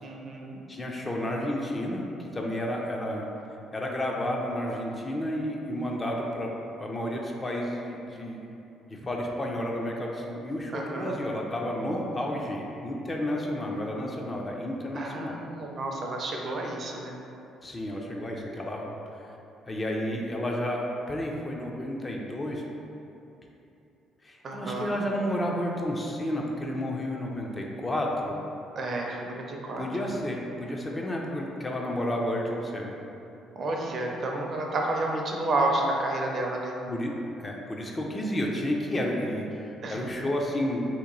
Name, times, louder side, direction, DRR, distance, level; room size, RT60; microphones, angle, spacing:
voice 1, 0.0-0.6 10.7-11.1 15.0-17.1 24.4-24.9 28.8-29.9 33.6-36.7 39.8-40.0, right 2 dB, 45° right, 0 dB, 0.5 m, -30 dB
voice 2, 0.7-3.3 3.7-6.5 6.8-8.4 8.9-15.3 17.6-18.9 19.7-22.6 24.2-28.4 29.8-32.9 36.9-37.1 37.4-40.8, left 1 dB, 25° left, -1 dB, 0.4 m, -31 dB
2.9 x 2.6 x 3.8 m, 2.9 s
cardioid pair, 100°, 0 cm